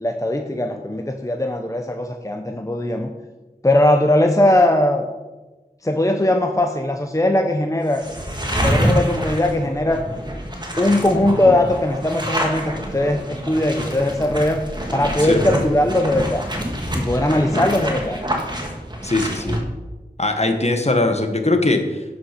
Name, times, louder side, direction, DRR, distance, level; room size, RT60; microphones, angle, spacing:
voice 1, 0.0-3.1 3.6-5.1 5.8-8.0 8.6-10.0 10.8-14.6 14.9-16.4 16.9-18.2, left 1 dB, 20° left, 4 dB, 0.8 m, -19 dB
sound 1, 7.9-19.6, equal, 25° right, 1.8 m, -26 dB
voice 2, 17.3-17.9 19.0-19.6 20.2-22.2, left 2 dB, 40° left, 5 dB, 1.3 m, -21 dB
11.0 x 6.3 x 5.8 m, 1.2 s
wide cardioid pair, 45°, 17 cm